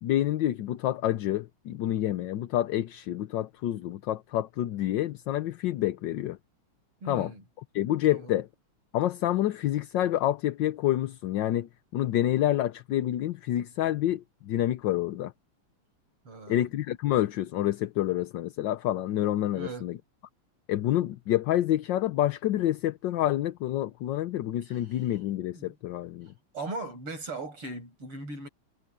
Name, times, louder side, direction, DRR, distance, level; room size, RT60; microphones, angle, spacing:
voice 1, 0.0-6.4 7.1-7.3 7.7-8.4 8.9-15.3 16.5-20.0 20.7-26.3, left 13 dB, 65° left, 1.3 m, -28 dB
voice 2, 7.0-7.4 8.1-8.3 16.3-16.6 19.5-19.9 24.7-24.8 25.6-25.8 26.5-28.5, right 2 dB, 85° right, 8.8 m, -38 dB
omnidirectional pair, 2.4 m